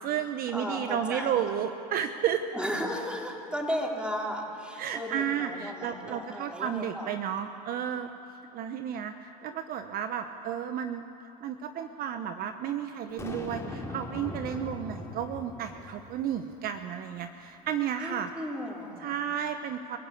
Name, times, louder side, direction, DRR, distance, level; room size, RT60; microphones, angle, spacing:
voice 1, 0.0-2.4 4.8-8.1 8.5-11.0 11.4-18.3 19.0-20.0, right 9 dB, 50° right, 8 dB, 1.1 m, -32 dB
voice 2, 0.5-1.5 2.5-7.3 18.0-19.2, equal, 5° right, -1 dB, 4.5 m, -35 dB
Boom, 13.2-16.5, left 2 dB, 15° left, 3.6 m, -40 dB
29.0 x 15.0 x 8.4 m, 2.9 s
hypercardioid pair, 90°, 19 cm